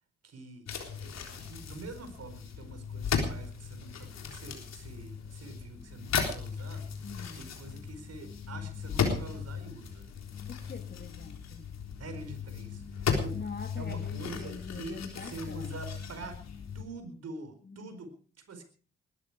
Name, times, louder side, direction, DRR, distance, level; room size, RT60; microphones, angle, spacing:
voice 1, 0.2-0.7 1.0-6.9 7.4-10.1 12.0-13.4 13.8-16.4 16.7-18.6, right 3 dB, 55° right, 8 dB, 4.7 m, -45 dB
sound 1, 0.7-16.8, left 6 dB, 60° left, 3.8 m, -36 dB
voice 2, 7.0-7.5 10.5-11.7 13.3-15.8 17.6-17.9, left 5 dB, 35° left, 8 dB, 1.8 m, -44 dB
20.5 x 13.5 x 4.9 m, 0.41 s
hypercardioid pair, 40°, 30 cm